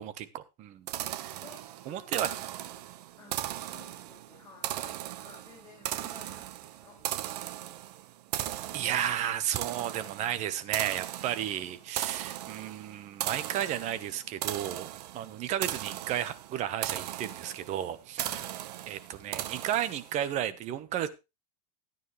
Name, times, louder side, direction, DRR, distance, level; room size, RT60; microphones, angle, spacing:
voice 1, 0.0-1.4 1.9-2.3 8.7-14.9 15.1-18.3 18.9-21.1, right 11 dB, 35° right, 13 dB, 1.1 m, -33 dB
sound 1, 0.9-20.2, right 13 dB, 70° right, 1.1 m, -38 dB
voice 2, 1.4-2.9 3.2-7.9 18.2-18.5, left 4 dB, 15° left, -5 dB, 6.4 m, -54 dB
14.0 x 9.4 x 3.2 m, 0.26 s
supercardioid pair, 145°, 21 cm